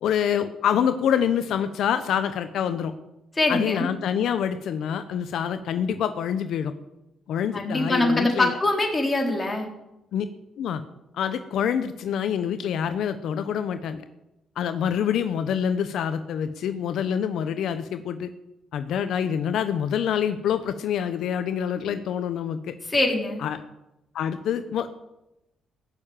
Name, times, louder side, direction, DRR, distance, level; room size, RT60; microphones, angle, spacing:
voice 1, 0.0-2.9 3.5-6.7 7.3-8.6 10.1-10.3 10.6-10.8 11.1-14.0 14.6-18.3 18.7-22.7 23.4-23.6 24.1-24.9, left 8 dB, 75° left, 10 dB, 0.9 m, -26 dB
voice 2, 3.4-3.9 7.5-9.7 22.9-23.4, left 2 dB, 20° left, 1 dB, 3.9 m, -23 dB
16.5 x 6.9 x 8.9 m, 0.93 s
cardioid pair, 90°, 0 cm